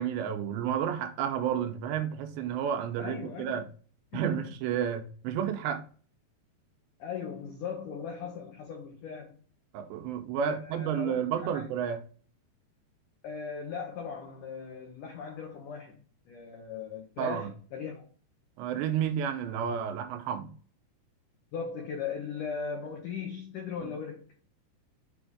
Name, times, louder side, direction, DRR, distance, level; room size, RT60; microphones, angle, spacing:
voice 1, 0.0-3.7 4.1-5.8 9.7-12.0 17.2-17.5 18.6-20.5 23.8-23.9, right 8 dB, 85° right, 2.9 m, -31 dB
voice 2, 3.0-3.6 4.1-4.4 7.0-9.3 10.4-11.6 13.2-18.1 21.5-24.3, left 6 dB, 85° left, 1.8 m, -38 dB
7.0 x 3.4 x 4.8 m
omnidirectional pair, 5.2 m